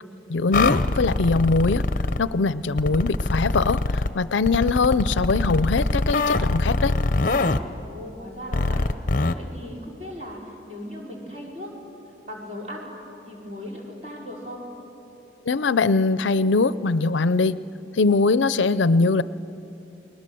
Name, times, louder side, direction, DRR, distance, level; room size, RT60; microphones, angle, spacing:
voice 1, 0.3-1.8 2.2-3.8 4.1-6.9 15.5-17.6 18.0-19.2, left 3 dB, 85° left, 16 dB, 0.6 m, -21 dB
sound 1, 0.5-2.2 2.8-4.1 4.5-7.6 8.5-9.3, left 2 dB, 45° left, 0.7 m, -23 dB
voice 2, 7.8-11.7 12.0-12.9 13.3-14.7, left 1 dB, 35° right, -2 dB, 5.0 m, -38 dB
29.5 x 20.5 x 7.7 m, 2.8 s
head